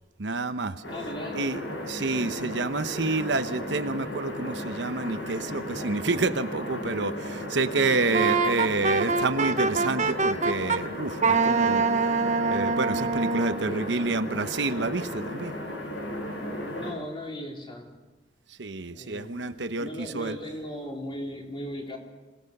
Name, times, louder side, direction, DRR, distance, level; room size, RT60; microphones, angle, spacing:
voice 1, 0.2-0.8 1.3-1.6 1.8-12.1 12.5-15.5 18.6-20.4, right 3 dB, 75° right, 9 dB, 1.0 m, -29 dB
sound 1, 0.8-16.9, left 1 dB, 80° left, 7.1 m, -35 dB
voice 2, 0.9-1.5 16.7-17.9 18.9-22.0, left 1 dB, 30° left, 0 dB, 3.8 m, -37 dB
Wind instrument woodwind instrument, 8.1-10.8 11.2-13.6, right 4 dB, 40° right, 0.9 m, -24 dB
27.0 x 19.0 x 6.7 m, 1.2 s
head